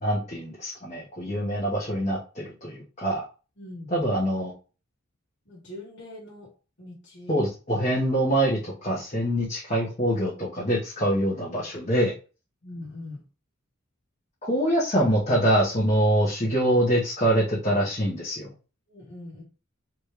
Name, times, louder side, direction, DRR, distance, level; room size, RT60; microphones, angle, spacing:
voice 1, 0.0-3.2 3.9-4.5 7.3-12.1 14.4-18.5, right 1 dB, 35° left, -7 dB, 1.4 m, -24 dB
voice 2, 3.6-3.9 5.5-6.5 6.8-7.4 12.6-13.2 18.9-19.4, left 1 dB, 60° left, -7 dB, 1.8 m, -41 dB
4.3 x 3.3 x 3.3 m, 0.34 s
head